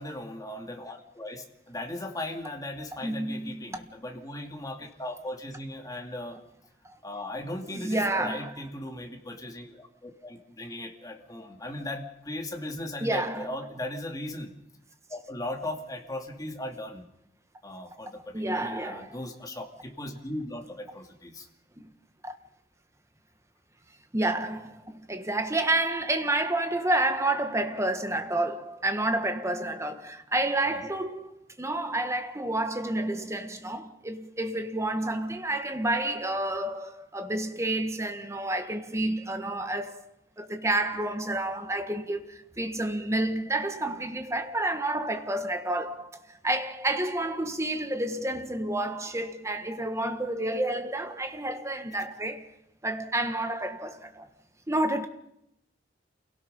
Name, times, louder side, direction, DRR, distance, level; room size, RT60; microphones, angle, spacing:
voice 1, 0.0-6.4 7.0-14.5 15.1-17.1 17.6-21.5 30.7-30.8, left 1 dB, 20° left, 2.5 m, -38 dB
voice 2, 3.0-3.8 6.8-7.0 7.7-8.5 13.0-13.5 18.3-19.1 21.8-21.9 22.2-22.3 24.1-40.0 40.4-52.5 52.8-54.3 54.7-55.1, right 1 dB, 15° right, 1.5 m, -29 dB
28.0 x 17.5 x 5.5 m
head